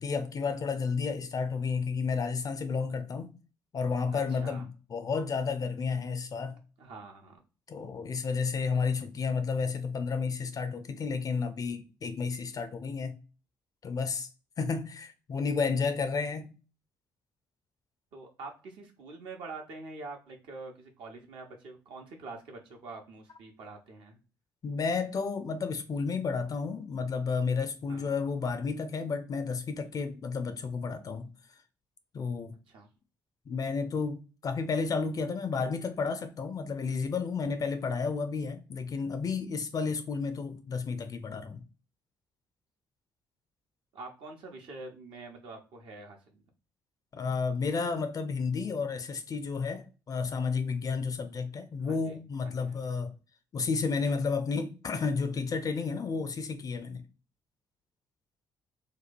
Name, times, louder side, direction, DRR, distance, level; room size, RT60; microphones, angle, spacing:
voice 1, 0.0-3.3 3.7-6.5 7.7-13.2 13.8-14.3 14.6-16.5 24.6-31.3 32.1-32.6 33.5-41.6 47.1-53.1 53.5-57.0, left 5 dB, 35° left, 0.5 m, -32 dB
voice 2, 4.1-4.7 6.8-7.4 18.1-24.2 27.9-28.1 32.7-32.9 43.9-46.5 51.8-52.2 52.4-52.8, right 3 dB, 55° right, 0.9 m, -45 dB
3.0 x 2.3 x 4.2 m
figure-of-eight pair, 45°, 10 cm